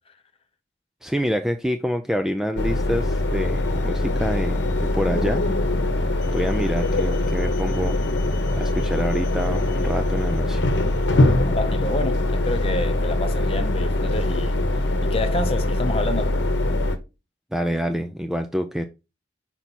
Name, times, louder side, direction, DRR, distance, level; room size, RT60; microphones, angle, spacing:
voice 1, 1.0-5.4 6.3-8.0 8.6-10.7 17.5-18.9, equal, 5° right, 0.4 m, -26 dB
sound 1, 2.6-17.0, left 1 dB, 70° left, 1.0 m, -22 dB
voice 2, 11.5-14.6 15.0-16.3, left 2 dB, 30° left, 0.8 m, -28 dB
5.8 x 4.5 x 4.0 m
head